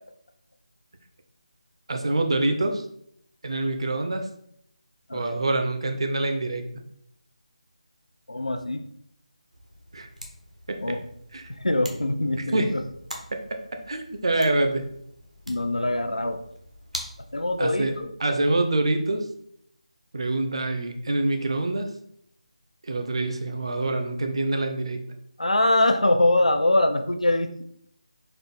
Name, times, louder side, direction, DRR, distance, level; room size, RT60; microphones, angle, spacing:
voice 1, 1.9-2.8 3.4-4.3 5.1-6.7 9.9-10.1 10.7-11.0 11.3-11.4 12.4-12.7 13.3-13.6 13.9-14.9 17.6-17.9 18.2-19.3 20.1-21.9 22.9-25.0, right 2 dB, 50° right, 5 dB, 0.6 m, -25 dB
voice 2, 8.3-8.8 10.8-11.0 11.5-12.8 15.5-16.4 17.3-18.1 25.4-27.5, left 1 dB, 75° left, 7 dB, 0.6 m, -23 dB
sound 1, 9.5-18.0, equal, 85° right, 1.1 m, -44 dB
4.4 x 2.5 x 4.1 m, 0.70 s
figure-of-eight pair, 155°, 4 cm